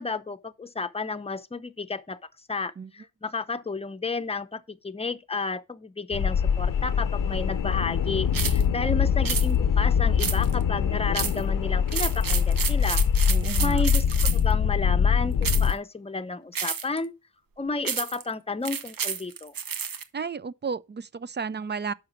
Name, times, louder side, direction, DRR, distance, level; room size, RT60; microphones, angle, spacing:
voice 1, 0.0-2.2 2.5-13.0 13.6-17.1 17.6-19.5, left 3 dB, 15° left, 0.7 m, -32 dB
sound 1, 6.1-15.7, left 7 dB, 70° left, 0.7 m, -23 dB
sound 2, 8.3-8.6 9.2-9.5 10.2-10.6 11.1-11.4 11.9-14.5 15.4-15.7 16.5-17.0 17.8-18.2 18.6-20.0, right 7 dB, 80° right, 1.0 m, -30 dB
voice 2, 13.3-13.8 20.1-21.9, right 5 dB, 30° right, 0.5 m, -33 dB
6.3 x 5.8 x 7.1 m
wide cardioid pair, 100°, 34 cm